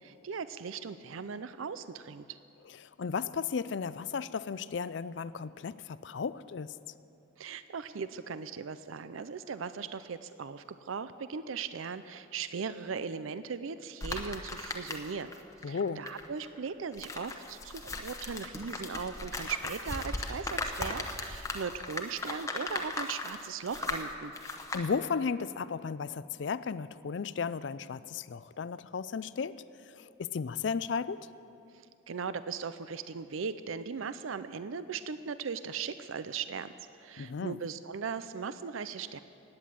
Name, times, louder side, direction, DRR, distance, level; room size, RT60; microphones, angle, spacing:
voice 1, 0.0-2.2 7.4-15.3 15.7-24.3 32.1-39.2, right 5 dB, 85° right, 13 dB, 0.5 m, -38 dB
voice 2, 2.7-6.7 15.6-16.0 24.7-29.6 29.9-31.3 37.2-37.6, left 5 dB, 60° left, 16 dB, 0.4 m, -34 dB
sound 1, 14.0-15.4 15.6-24.9, left 2 dB, 15° left, 0.9 m, -37 dB
16.5 x 9.8 x 7.6 m, 2.7 s
head